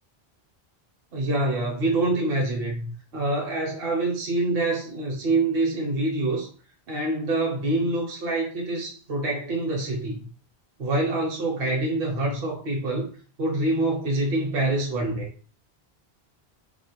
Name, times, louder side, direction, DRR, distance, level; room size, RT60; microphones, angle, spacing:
voice 1, 1.1-6.5 6.9-10.2 10.8-13.1 13.4-15.3, right 2 dB, 70° right, -1 dB, 0.9 m, -26 dB
2.4 x 2.1 x 2.8 m, 0.40 s
omnidirectional pair, 1.1 m